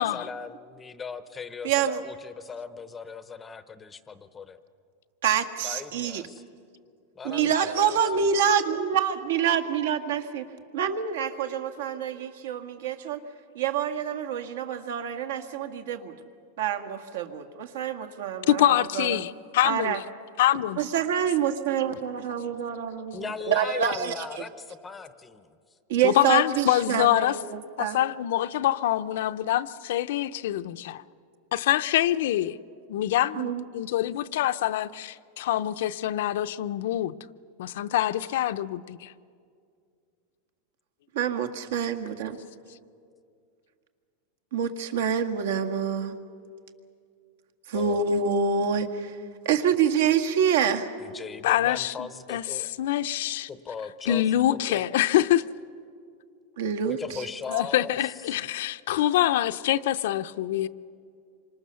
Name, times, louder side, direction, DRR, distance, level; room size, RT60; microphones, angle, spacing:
voice 1, 0.0-4.6 5.6-6.4 7.1-8.3 23.1-25.5 47.7-48.0 51.0-52.7 53.5-54.8 56.9-58.1, left 5 dB, 10° left, 12 dB, 0.7 m, -38 dB
voice 2, 1.6-2.0 5.2-6.2 7.2-10.4 10.7-13.2 13.6-16.1 16.6-19.2 19.6-20.0 20.8-24.3 25.9-28.0 33.3-33.6 41.1-42.4 44.5-46.1 47.7-49.2 49.5-50.9 56.6-57.0, right 7 dB, 70° right, 6 dB, 1.8 m, -26 dB
voice 3, 18.5-20.0 20.4-20.8 26.0-27.4 27.8-31.0 31.5-32.6 32.9-37.1 37.6-39.1 51.4-53.5 54.1-55.4 57.5-60.7, left 13 dB, 65° left, 12 dB, 0.6 m, -25 dB
27.5 x 25.5 x 6.9 m, 2.3 s
supercardioid pair, 175°, 0 cm